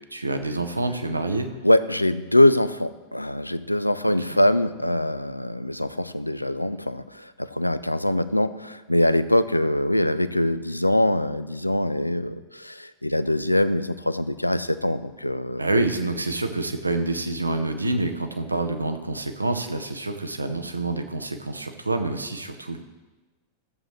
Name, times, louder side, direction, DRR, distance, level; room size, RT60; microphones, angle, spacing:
voice 1, 0.1-1.5 4.0-4.1 15.6-22.8, right 2 dB, 80° right, 7 dB, 0.7 m, -27 dB
voice 2, 1.6-15.6, left 1 dB, 85° left, 14 dB, 0.4 m, -23 dB
14.0 x 7.5 x 3.2 m, 1.2 s
figure-of-eight pair, 90°, 0 cm